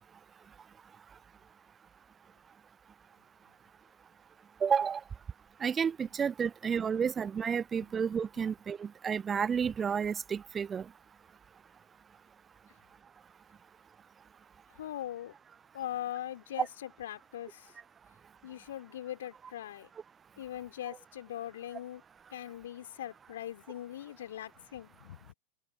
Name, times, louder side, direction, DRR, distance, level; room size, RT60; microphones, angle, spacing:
voice 1, 4.6-5.0 5.6-10.8 16.6-16.7, right 7 dB, 20° right, 0.9 m, -31 dB
voice 2, 14.7-15.3 15.7-17.7 18.4-19.9 20.4-22.0 22.3-25.3, left 12 dB, 60° left, 4.7 m, -41 dB
figure-of-eight pair, 90°, 0 cm